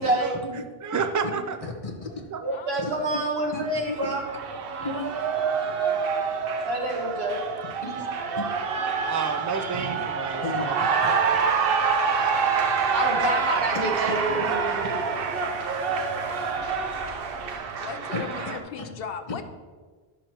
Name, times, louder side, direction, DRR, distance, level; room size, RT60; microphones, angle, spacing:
voice 1, 0.0-0.3 2.4-4.2 6.6-7.4 12.9-14.9, right 2 dB, 85° right, 0 dB, 1.6 m, -27 dB
voice 2, 0.8-1.6 2.3-2.4 9.1-10.8, right 5 dB, 30° right, 7 dB, 0.3 m, -30 dB
voice 3, 1.6-2.9 3.5-4.1 4.8-5.1 5.5-6.3 7.8-8.5 10.4-11.2 12.6-13.1 13.7-15.0 15.7-16.2 18.1-18.5 18.8-18.9, left 2 dB, 35° left, 1 dB, 1.1 m, -36 dB
voice 4, 2.5-3.1 17.8-19.4, left 7 dB, 70° left, 9 dB, 0.8 m, -37 dB
Cheering, 3.4-18.6, right 5 dB, 65° right, 0.9 m, -27 dB
sound 1, 10.9-17.6, left 2 dB, 5° right, 2.2 m, -48 dB
11.5 x 6.4 x 3.0 m, 1.4 s
omnidirectional pair, 1.0 m